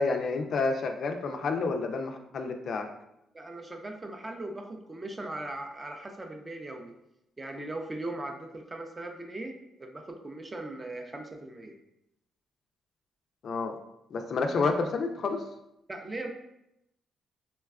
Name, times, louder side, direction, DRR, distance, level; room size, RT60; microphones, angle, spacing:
voice 1, 0.0-2.9 13.4-13.8 14.1-15.5, left 4 dB, 55° left, 5 dB, 0.3 m, -29 dB
voice 2, 3.3-6.9 7.4-11.7 15.9-16.3, right 2 dB, 20° right, 4 dB, 0.4 m, -39 dB
4.1 x 2.2 x 2.3 m, 0.83 s
cardioid pair, 90°, 0 cm